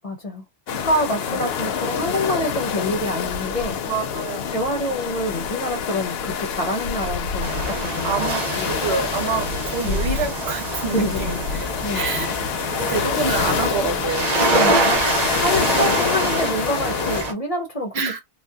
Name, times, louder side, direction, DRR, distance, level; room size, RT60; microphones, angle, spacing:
voice 1, 0.0-0.4 0.8-3.8 4.5-8.8 9.8-10.1 10.9-12.3 14.5-15.0 15.3-18.0, left 1 dB, 40° left, 0.7 m, -26 dB
sound 1, 0.7-17.2, left 7 dB, 70° left, 0.8 m, -27 dB
voice 2, 3.9-4.5 8.0-12.4 12.7-14.3 17.9-18.2, right 5 dB, 75° right, 1.1 m, -27 dB
sound 2, 7.4-17.3, right 2 dB, 40° right, 0.9 m, -25 dB
2.7 x 2.2 x 2.3 m
omnidirectional pair, 1.1 m